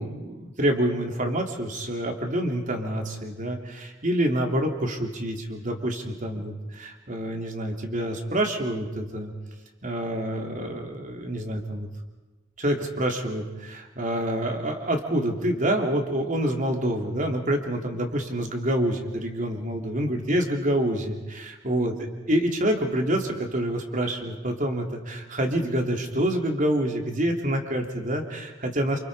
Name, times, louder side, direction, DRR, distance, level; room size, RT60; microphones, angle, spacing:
voice 1, 0.0-9.3 9.8-11.9 12.6-21.2 21.6-21.9 22.3-29.0, right 1 dB, 40° right, 3 dB, 3.1 m, -27 dB
29.0 x 27.5 x 5.0 m, 1.1 s
head